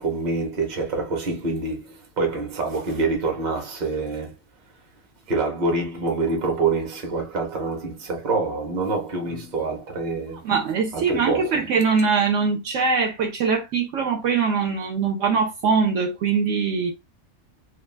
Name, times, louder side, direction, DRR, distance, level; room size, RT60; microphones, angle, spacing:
voice 1, 0.0-4.3 5.3-10.4 10.9-11.6, right 3 dB, 40° right, 0.8 m, -26 dB
voice 2, 10.4-16.9, right 5 dB, 70° right, 0.9 m, -22 dB
2.5 x 2.3 x 3.2 m
omnidirectional pair, 1.4 m